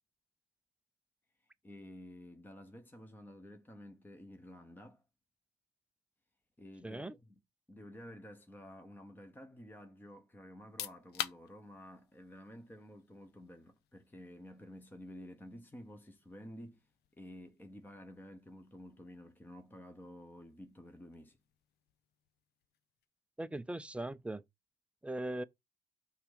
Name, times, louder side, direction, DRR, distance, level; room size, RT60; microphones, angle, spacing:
voice 1, 1.6-5.0 6.6-7.4 7.7-16.9 17.2-21.4, left 1 dB, 10° left, 1.1 m, -52 dB
voice 2, 6.8-7.1 23.4-24.4 25.0-25.4, right 1 dB, 5° right, 0.6 m, -39 dB
sound 1, 10.5-23.2, left 11 dB, 75° left, 0.7 m, -51 dB
5.9 x 3.7 x 5.0 m
cardioid pair, 110°, 17 cm